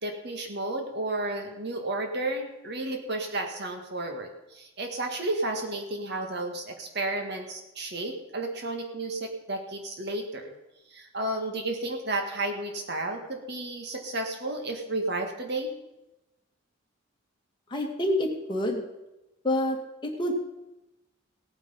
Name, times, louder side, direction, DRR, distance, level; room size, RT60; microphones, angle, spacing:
voice 1, 0.0-10.5 10.9-15.7, right 2 dB, 55° right, 4 dB, 1.8 m, -32 dB
voice 2, 17.7-18.9 19.4-19.8 20.0-20.3, left 1 dB, 25° left, 0 dB, 2.2 m, -27 dB
17.0 x 9.1 x 5.6 m, 0.95 s
head